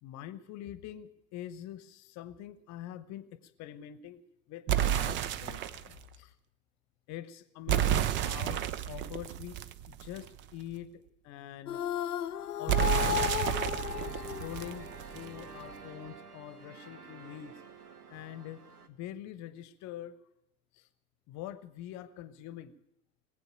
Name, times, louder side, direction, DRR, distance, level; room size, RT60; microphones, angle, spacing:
voice 1, 0.0-4.2 4.5-6.3 7.1-9.6 9.9-11.8 12.6-13.3 14.1-17.5 18.1-20.2 20.7-20.9 21.3-22.7, left 12 dB, 35° left, 15 dB, 1.0 m, -44 dB
sound 1, 4.7-5.9 7.7-10.4 12.7-15.4, right 11 dB, 25° right, 0.5 m, -31 dB
sound 2, 11.7-15.1, left 10 dB, 80° left, 0.6 m, -34 dB
sound 3, 13.8-18.9, right 4 dB, 80° right, 1.3 m, -49 dB
19.0 x 8.4 x 8.8 m, 0.79 s
figure-of-eight pair, 80°, 46 cm